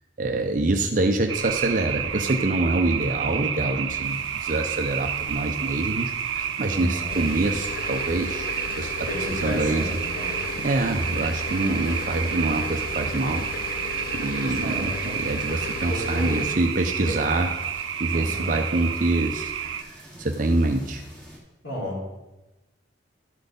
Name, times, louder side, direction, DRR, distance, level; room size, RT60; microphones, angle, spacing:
voice 1, 0.2-8.5 8.8-9.9 10.6-13.5 14.1-17.5 17.7-19.5 19.8-21.0, right 2 dB, 45° right, 4 dB, 0.5 m, -25 dB
sound 1, 1.3-19.8, right 8 dB, 90° right, 0.6 m, -30 dB
sound 2, 4.0-21.4, right 1 dB, 5° left, 1.8 m, -49 dB
voice 2, 6.7-7.2 9.1-10.3 14.6-15.2 15.9-16.5 17.1-17.2 18.1-18.6 21.6-22.0, equal, 75° left, -4 dB, 3.2 m, -33 dB
sound 3, 7.1-16.5, left 6 dB, 50° left, 0.4 m, -36 dB
11.5 x 4.1 x 5.1 m, 1.1 s
head